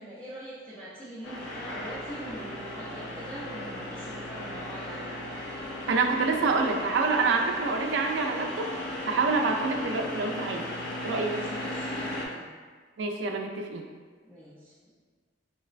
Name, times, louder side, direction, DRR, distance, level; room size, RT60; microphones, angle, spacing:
voice 1, 0.0-5.2 11.1-12.5 14.2-14.9, equal, 10° left, -12 dB, 0.4 m, -43 dB
sound 1, 1.2-12.3, left 1 dB, 65° left, 0.5 m, -36 dB
voice 2, 5.9-10.6 11.0-11.3 13.0-13.8, right 4 dB, 65° right, 3 dB, 0.3 m, -27 dB
3.8 x 2.1 x 2.4 m, 1.5 s
head